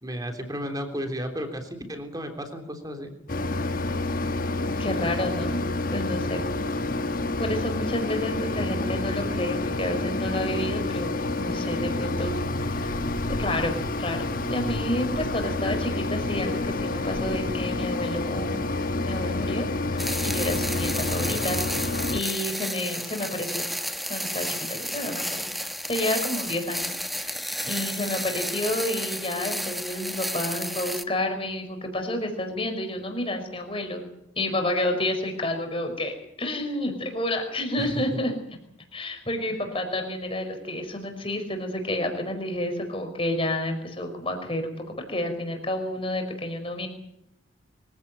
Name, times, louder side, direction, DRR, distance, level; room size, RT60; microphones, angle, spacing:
voice 1, 0.0-3.1 21.1-21.4 37.8-38.2 39.5-39.6, equal, 20° right, 6 dB, 3.4 m, -34 dB
Mechanisms, 3.3-22.2, left 2 dB, 45° left, 1.2 m, -28 dB
voice 2, 4.6-5.6 5.9-6.5 7.4-13.1 13.4-14.2 14.5-18.7 19.0-21.6 22.1-23.7 24.1-25.4 25.9-34.0 34.3-36.1 36.4-38.4 38.9-46.9, left 1 dB, 25° left, 5 dB, 5.0 m, -30 dB
sound 1, 20.0-31.0, equal, ahead, 0.9 m, -32 dB
24.5 x 16.0 x 9.1 m, 0.80 s
head